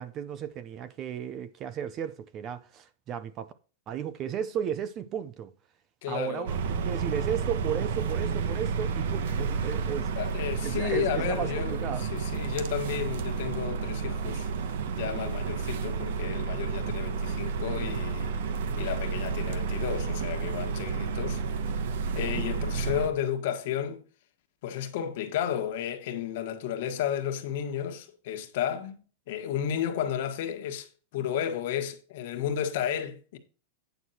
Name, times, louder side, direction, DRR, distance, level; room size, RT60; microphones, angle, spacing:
voice 1, 0.0-3.5 3.9-5.5 6.1-10.1 10.6-12.1, right 9 dB, 25° right, 0.5 m, -34 dB
voice 2, 6.0-6.5 10.2-14.5 14.9-18.3 18.8-21.4 22.1-24.0 24.6-33.4, left 9 dB, 50° left, 1.5 m, -32 dB
sound 1, 6.5-23.1, right 5 dB, 60° right, 1.1 m, -31 dB
Explosion, 9.2-11.8 12.2-12.3, right 3 dB, 80° right, 3.6 m, -48 dB
9.3 x 6.3 x 4.3 m
supercardioid pair, 175°, 0 cm